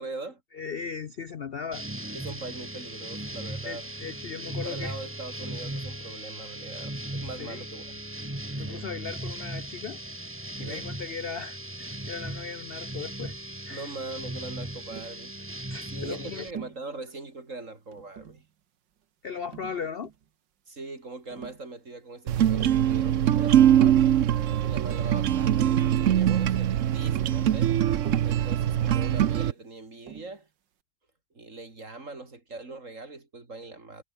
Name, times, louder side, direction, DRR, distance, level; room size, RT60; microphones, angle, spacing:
voice 1, 0.0-0.4 2.1-3.9 4.6-8.0 8.7-8.9 10.6-10.9 13.7-15.4 15.9-18.4 20.7-24.2 24.7-27.7 28.2-30.5 31.3-34.0, right 3 dB, 40° right, 3.9 m, -41 dB
voice 2, 0.5-1.9 3.6-5.0 7.4-7.6 8.6-10.0 10.6-13.4 13.6-13.9 15.7-16.5 19.2-20.1, left 6 dB, 80° left, 0.5 m, -37 dB
sound 1, 1.7-16.5, right 1 dB, 5° right, 1.4 m, -37 dB
Tap, 14.9-15.2 16.6-16.9 17.9-18.5 19.5-20.3 21.3-21.6 22.3-22.9 24.0-24.1 24.4-24.9 26.2-26.6 28.0-28.4 30.1-30.4, right 9 dB, 75° right, 2.0 m, -43 dB
sound 2, 22.3-29.5, right 10 dB, 60° right, 0.9 m, -22 dB
omnidirectional pair, 2.0 m